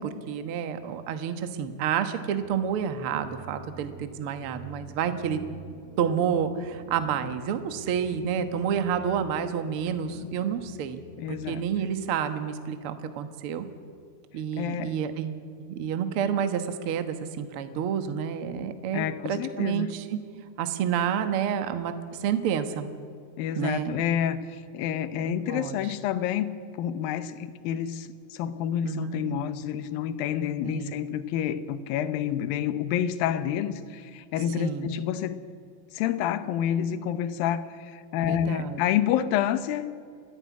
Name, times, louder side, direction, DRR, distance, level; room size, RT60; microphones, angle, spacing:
voice 1, 0.0-5.4 6.0-11.0 11.3-13.6 14.3-20.2 20.6-21.9 22.2-22.9 23.5-24.0 25.2-25.8 28.8-29.2 30.6-30.9 34.6-34.9 38.2-38.8, right 8 dB, 65° right, 9 dB, 1.3 m, -29 dB
sound 1, 2.4-11.8, right 2 dB, 85° right, 4.9 m, -47 dB
voice 2, 11.2-11.6 14.6-15.0 18.9-19.9 23.4-35.4 35.9-39.9, left 10 dB, 75° left, 13 dB, 2.6 m, -29 dB
29.5 x 11.5 x 9.4 m, 2.2 s
omnidirectional pair, 4.4 m